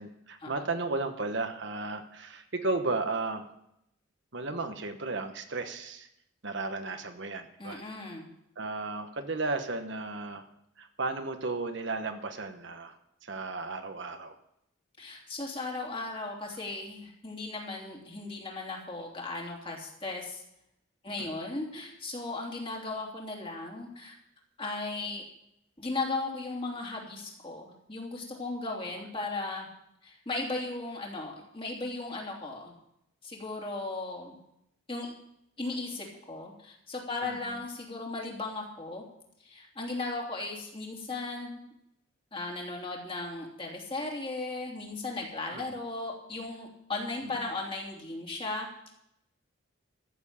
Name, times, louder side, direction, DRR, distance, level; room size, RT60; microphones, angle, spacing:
voice 1, 0.0-3.4 4.3-6.1 6.4-7.8 8.6-10.4 10.8-12.9 13.2-14.3 21.2-21.3 28.7-29.0 37.2-37.4 45.5-45.8 47.2-47.3, right 3 dB, 60° right, 7 dB, 1.1 m, -34 dB
voice 2, 7.6-8.3 15.0-20.4 21.0-24.2 24.6-25.2 25.8-29.7 30.0-32.7 33.2-34.3 34.9-35.1 35.6-39.0 39.4-41.6 42.3-48.9, left 3 dB, 25° left, -1 dB, 2.9 m, -36 dB
14.0 x 7.2 x 8.6 m, 0.78 s
head